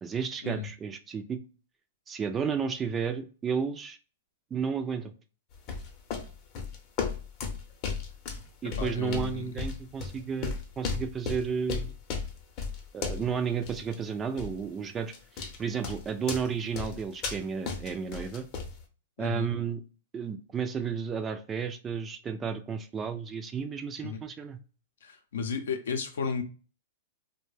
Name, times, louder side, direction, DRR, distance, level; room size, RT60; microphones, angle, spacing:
voice 1, 0.0-1.4 2.1-4.0 4.5-5.1 8.6-11.9 12.9-18.5 19.2-19.8 20.1-24.6, right 6 dB, 20° right, 8 dB, 0.3 m, -32 dB
sound 1, 5.5-13.4 13.6-14.0 14.4-14.6 15.1-15.6 15.8-18.8, left 5 dB, 40° left, 0.6 m, -35 dB
voice 2, 8.6-9.6 19.2-19.5 24.0-24.2 25.0-26.4, left 6 dB, 80° left, 5 dB, 0.6 m, -34 dB
2.5 x 2.1 x 3.2 m, 0.36 s
hypercardioid pair, 130°, 0 cm